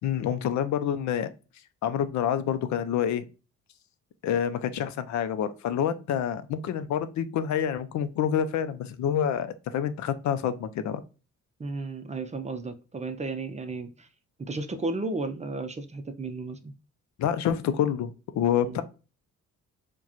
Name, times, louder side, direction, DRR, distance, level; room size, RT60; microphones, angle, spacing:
voice 1, 0.0-1.3 1.8-3.2 4.2-11.0 17.2-18.8, left 9 dB, 70° left, 0.5 m, -27 dB
voice 2, 11.6-14.1 14.4-16.7 18.6-18.8, right 3 dB, 25° right, 0.6 m, -34 dB
4.6 x 2.3 x 2.8 m
cardioid pair, 90°, 30 cm